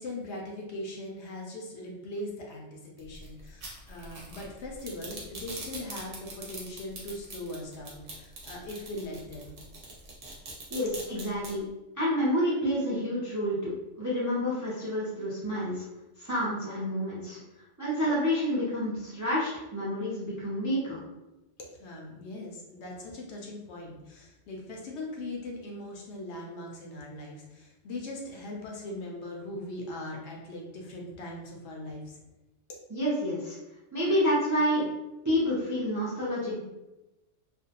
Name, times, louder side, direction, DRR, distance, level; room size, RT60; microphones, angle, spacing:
voice 1, 0.0-9.6 21.8-32.2, left 1 dB, 70° left, -1 dB, 0.8 m, -40 dB
sound 1, 3.0-11.5, right 2 dB, 55° right, 0.8 m, -42 dB
voice 2, 10.7-11.7 12.0-15.9 16.2-17.4 17.8-21.0 32.9-33.6 33.9-34.9 35.2-36.6, equal, 30° right, -8 dB, 0.3 m, -29 dB
2.5 x 2.1 x 2.8 m, 1.0 s
omnidirectional pair, 1.3 m